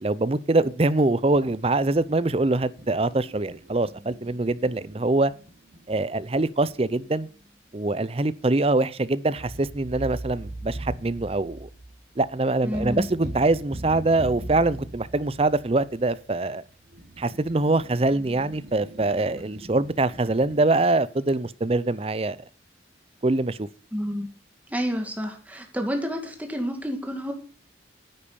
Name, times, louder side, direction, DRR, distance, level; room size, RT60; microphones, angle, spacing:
voice 1, 0.0-5.3 5.9-7.3 7.7-11.7 12.2-16.6 17.2-22.4 23.2-23.6, right 2 dB, 30° right, 0.6 m, -24 dB
sound 1, 1.3-7.5 9.4-20.7, right 1 dB, 60° right, 3.1 m, -41 dB
voice 2, 12.6-13.1 23.9-24.3 24.7-27.3, equal, 10° right, 2.3 m, -29 dB
9.9 x 8.6 x 7.0 m
head